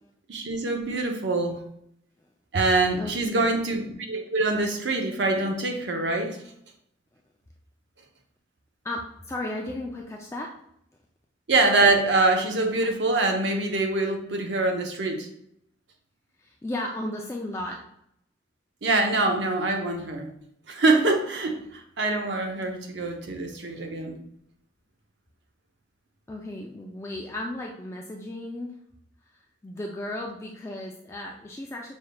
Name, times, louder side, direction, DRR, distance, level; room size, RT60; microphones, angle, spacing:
voice 1, 0.3-1.6 2.5-6.4 11.5-15.3 18.8-20.3 20.7-24.2, right 2 dB, 70° right, 3 dB, 0.7 m, -24 dB
voice 2, 3.0-3.5 8.8-10.5 16.4-17.8 26.3-28.7 29.3-32.0, left 1 dB, 15° left, 0 dB, 0.3 m, -35 dB
5.3 x 3.5 x 2.2 m, 0.75 s
head